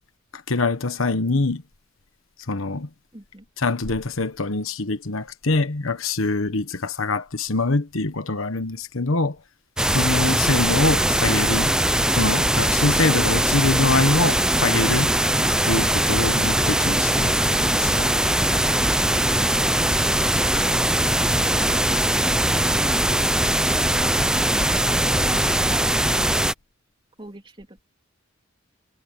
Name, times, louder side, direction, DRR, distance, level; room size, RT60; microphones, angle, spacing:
voice 1, 0.3-1.6 2.5-2.9 3.6-9.4 9.9-11.7 12.1-15.1 15.6-18.1, left 3 dB, 75° left, 1.3 m, -24 dB
voice 2, 3.1-3.5 21.4-22.4 23.9-26.0 27.2-27.8, right 1 dB, 25° right, 3.3 m, -41 dB
sound 1, 9.8-26.5, right 1 dB, 5° right, 0.6 m, -21 dB
head